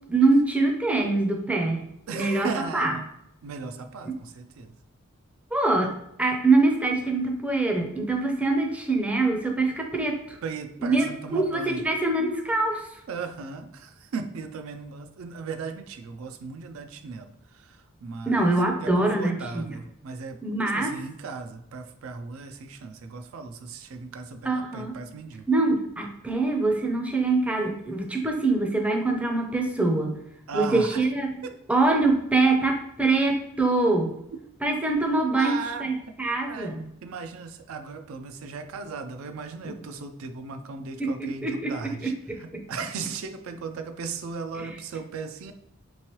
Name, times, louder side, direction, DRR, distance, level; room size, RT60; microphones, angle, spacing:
voice 1, 0.1-1.8 2.1-2.9 4.0-4.1 5.5-10.4 10.8-12.9 18.3-19.7 20.4-21.0 24.4-24.9 25.5-30.2 30.5-31.3 31.7-34.1 34.6-36.8 41.0-42.6 44.5-44.7, right 2 dB, 5° right, 2 dB, 0.4 m, -24 dB
voice 2, 2.1-3.0 3.4-4.7 10.4-11.8 13.1-20.4 20.8-25.5 30.5-31.0 31.4-31.6 35.4-35.9 36.5-36.7 37.0-42.1 42.4-45.5, right 5 dB, 80° right, 7 dB, 0.4 m, -37 dB
3.4 x 3.1 x 2.9 m, 0.79 s
head